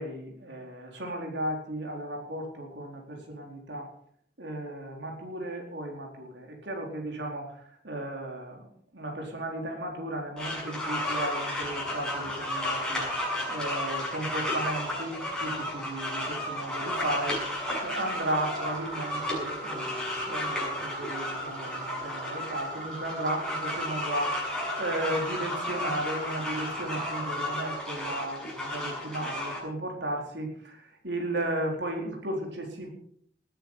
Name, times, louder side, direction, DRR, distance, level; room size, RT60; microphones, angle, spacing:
voice 1, 0.0-3.9 4.4-8.7 8.9-13.1 13.5-32.9, right 1 dB, 90° right, 1 dB, 4.3 m, -35 dB
sound 1, 10.4-29.6, left 1 dB, 5° left, 6.9 m, -33 dB
sound 2, 17.0-27.9, right 2 dB, 45° right, 7.4 m, -41 dB
19.5 x 10.5 x 5.7 m, 0.64 s
head